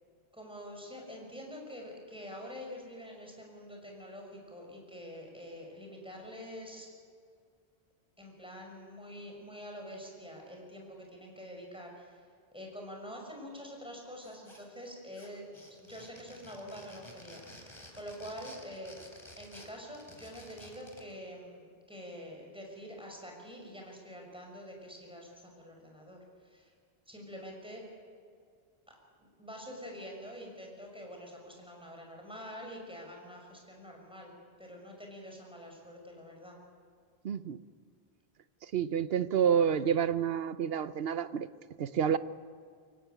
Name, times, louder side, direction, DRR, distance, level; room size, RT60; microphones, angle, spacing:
voice 1, 0.3-6.9 8.2-12.2 12.5-15.5 15.8-19.0 19.4-26.7 27.1-27.8 28.9-34.3 34.6-36.6, equal, 5° right, 6.0 m, -46 dB
sound 1, 14.2-14.9 15.1-21.1, left 1 dB, 30° left, 3.8 m, -52 dB
voice 2, 37.2-37.6 38.6-41.5 41.8-42.2, right 8 dB, 70° right, 1.0 m, -29 dB
24.0 x 17.0 x 9.2 m
omnidirectional pair, 1.0 m